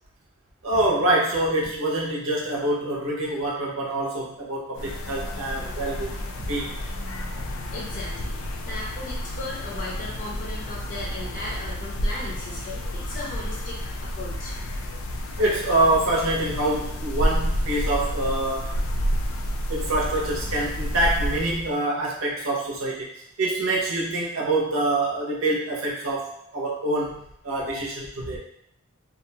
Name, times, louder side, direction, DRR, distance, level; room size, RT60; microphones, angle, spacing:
voice 1, 0.6-6.8 15.4-18.8 19.7-23.1 23.4-28.4, right 2 dB, 70° right, -3 dB, 0.7 m, -25 dB
sound 1, 4.7-21.7, equal, 70° left, 0.4 m, -30 dB
voice 2, 7.7-8.4 8.6-13.8 14.1-14.5, left 2 dB, 40° left, -5 dB, 0.7 m, -36 dB
2.4 x 2.2 x 2.7 m, 0.74 s
head